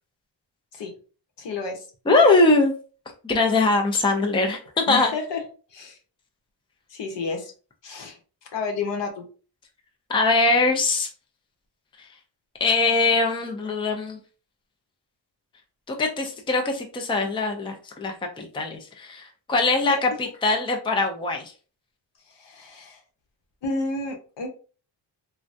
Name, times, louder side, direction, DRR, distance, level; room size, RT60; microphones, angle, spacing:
voice 1, 1.4-1.9 2.2-2.3 4.9-5.4 5.7-6.0 6.9-7.5 7.8-8.2 8.5-9.3 19.8-20.0 22.3-23.0 23.6-24.5, left 4 dB, 70° left, 2 dB, 1.0 m, -31 dB
voice 2, 2.1-2.7 3.2-5.1 10.1-11.1 12.6-14.2 15.9-20.1 20.4-21.5, left 3 dB, 10° left, 3 dB, 0.5 m, -22 dB
3.4 x 2.2 x 2.6 m, 0.37 s
cardioid pair, 100°, 44 cm